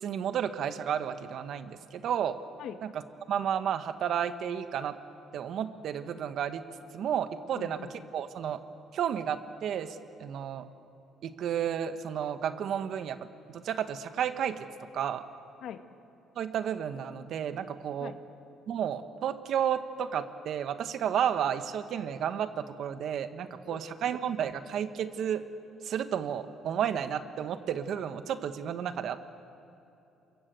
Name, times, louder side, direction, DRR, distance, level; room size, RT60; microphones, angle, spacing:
voice 1, 0.0-2.4 2.8-3.0 3.3-4.9 5.3-6.6 6.9-7.8 8.1-8.6 8.9-10.6 11.2-13.2 13.5-14.7 14.9-15.2 16.3-18.1 18.7-25.4 25.8-29.3, right 9 dB, 65° right, 9 dB, 1.6 m, -32 dB
voice 2, 7.5-8.1 15.6-15.9 18.0-18.2 23.6-24.1, left 9 dB, 70° left, 8 dB, 1.6 m, -43 dB
28.5 x 23.5 x 7.9 m, 2.8 s
cardioid pair, 105°, 0 cm